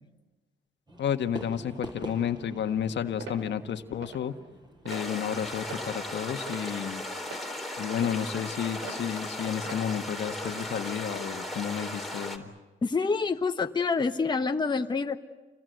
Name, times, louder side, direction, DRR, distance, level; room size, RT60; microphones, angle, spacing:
Fireworks, 0.9-5.9, right 1 dB, 20° right, 7.3 m, -45 dB
voice 1, 1.0-4.3 4.8-7.0 7.8-12.5, left 8 dB, 65° left, 7 dB, 1.6 m, -31 dB
sound 1, 3.2-3.4 4.0-4.2 4.8-5.1 5.7-5.9 6.5-6.8 7.3-7.5 8.0-8.2 8.8-9.0 9.6-9.8 10.4-10.6, right 3 dB, 85° right, 6.0 m, -41 dB
sound 2, 4.9-12.4, left 1 dB, ahead, 3.7 m, -36 dB
voice 2, 12.8-15.2, left 4 dB, 20° left, 5 dB, 1.2 m, -27 dB
29.5 x 22.0 x 8.0 m, 1.2 s
cardioid pair, 90°, 20 cm